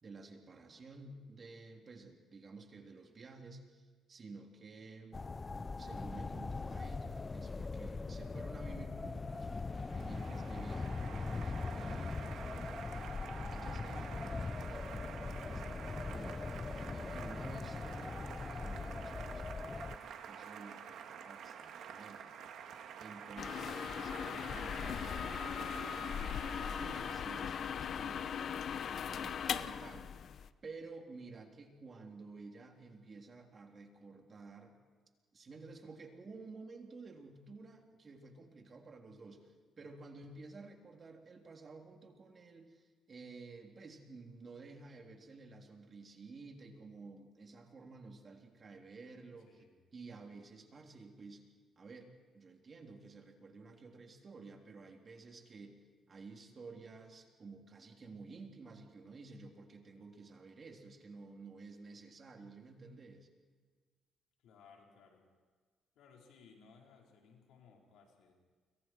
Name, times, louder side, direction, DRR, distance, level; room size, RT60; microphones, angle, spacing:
voice 1, 0.0-5.3 5.8-9.5 9.9-12.4 13.5-16.4 16.9-19.9 20.3-22.3 23.0-28.5 28.9-30.1 30.6-34.8 35.3-49.6 49.9-51.5 51.8-55.8 56.1-63.3, right 3 dB, 40° right, 2 dB, 3.5 m, -52 dB
sound 1, 5.1-20.0, left 3 dB, 30° left, 0.7 m, -41 dB
Applause, 9.0-27.9, right 8 dB, 75° right, 2.1 m, -49 dB
voice 2, 19.7-20.2 49.5-49.8 64.4-65.2 65.9-68.3, left 5 dB, 85° left, 0 dB, 4.7 m, -62 dB
sound 2, 23.4-30.5, left 8 dB, 60° left, 0.8 m, -39 dB
29.5 x 23.5 x 4.7 m, 1.5 s
cardioid pair, 90°, 0 cm